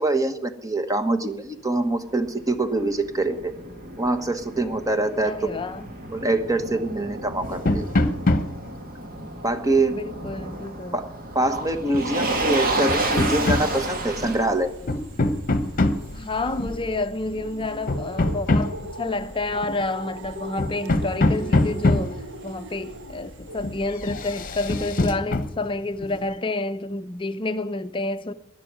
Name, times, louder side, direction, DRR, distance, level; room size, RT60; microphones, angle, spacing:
voice 1, 0.0-3.5 4.0-5.3 6.1-7.9 9.4-10.0 10.9-14.7, right 2 dB, 15° right, 1.1 m, -24 dB
Motor vehicle (road), 1.9-17.0, right 2 dB, 45° right, 1.8 m, -32 dB
voice 2, 5.2-5.9 9.9-11.0 15.6-15.8 16.1-22.2 22.4-28.3, left 2 dB, 25° left, 0.7 m, -29 dB
sound 1, 7.4-8.7 10.2-10.4 11.9-12.3 12.9-13.7 14.2-14.4 14.8-16.1 16.6-16.8 17.4-18.9 19.6-19.9 20.2-20.3 20.6-22.2 23.4-23.8 24.0-25.5 26.0-26.3, left 2 dB, 40° left, 1.0 m, -23 dB
sound 2, 12.3-24.7, equal, 60° right, 1.2 m, -40 dB
12.0 x 11.0 x 9.4 m
head